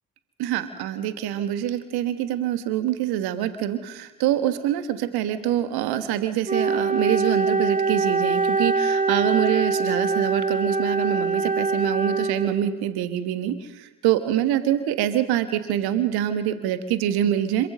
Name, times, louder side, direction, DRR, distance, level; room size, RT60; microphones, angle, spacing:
voice 1, 0.4-17.7, right 11 dB, 60° right, 10 dB, 1.5 m, -25 dB
Wind instrument woodwind instrument, 6.5-12.8, right 4 dB, 20° right, 1.6 m, -23 dB
27.0 x 15.0 x 6.7 m, 1.1 s
figure-of-eight pair, 50°, 43 cm